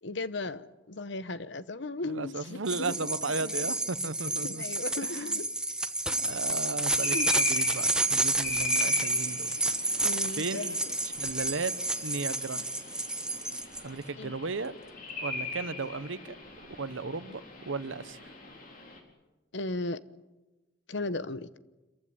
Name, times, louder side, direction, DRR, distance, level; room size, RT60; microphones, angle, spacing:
voice 1, 0.0-2.9 3.4-3.5 4.4-5.5 7.1-7.3 10.0-10.7 12.5-12.6 14.2-14.3 19.5-20.0 20.9-21.5, left 2 dB, 70° left, 1.0 m, -36 dB
voice 2, 2.0-4.6 4.9-5.4 6.1-9.5 9.9-10.8 11.0-11.7 12.0-12.6 13.8-14.7 15.2-16.4 16.8-18.3, right 3 dB, 85° right, 1.0 m, -35 dB
sound 1, 2.6-13.8, right 2 dB, 5° right, 1.0 m, -30 dB
sound 2, 7.0-19.0, left 3 dB, 45° left, 4.4 m, -39 dB
27.0 x 15.0 x 9.8 m
head